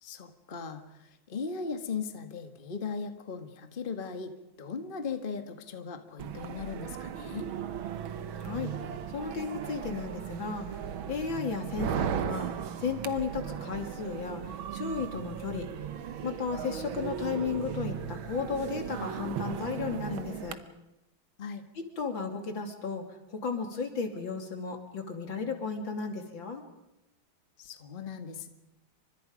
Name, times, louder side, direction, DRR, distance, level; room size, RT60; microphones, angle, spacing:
voice 1, 0.0-4.3 4.6-7.5 21.4-21.6 27.6-28.5, left 5 dB, 30° left, 7 dB, 1.6 m, -38 dB
sound 1, 6.2-20.5, right 8 dB, 80° right, 1.9 m, -37 dB
voice 2, 8.4-8.7 9.1-10.7 11.1-12.5 12.8-15.7 16.2-20.6 21.8-26.6, left 5 dB, 70° left, 4 dB, 3.5 m, -34 dB
29.5 x 25.0 x 5.2 m, 0.92 s
omnidirectional pair, 2.2 m